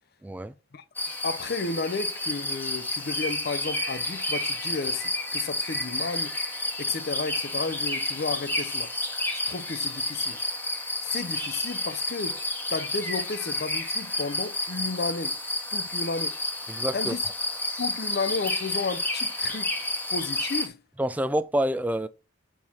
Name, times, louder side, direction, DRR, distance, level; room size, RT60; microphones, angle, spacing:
voice 1, 0.2-0.5 16.7-17.1 21.0-22.1, equal, 10° right, 0.3 m, -27 dB
sound 1, 1.0-20.7, left 1 dB, 10° left, 0.9 m, -30 dB
voice 2, 1.2-6.4 6.8-8.9 9.3-10.4 11.0-12.4 12.7-15.4 15.7-16.4 16.9-17.2 17.8-19.7 20.1-20.8, left 4 dB, 50° left, 0.5 m, -32 dB
4.6 x 4.3 x 5.6 m
head